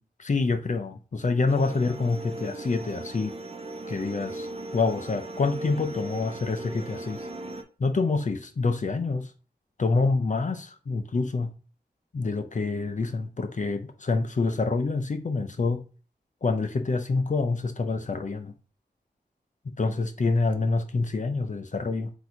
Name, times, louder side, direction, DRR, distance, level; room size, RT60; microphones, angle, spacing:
voice 1, 0.2-3.3 3.9-4.5 4.7-7.2 7.8-9.3 9.8-11.5 12.1-15.8 16.4-18.5 19.8-22.1, left 3 dB, 45° left, 0.5 m, -27 dB
sound 1, 1.5-7.6, right 2 dB, 35° right, 0.5 m, -38 dB
3.6 x 2.7 x 4.3 m
wide cardioid pair, 75°, 18 cm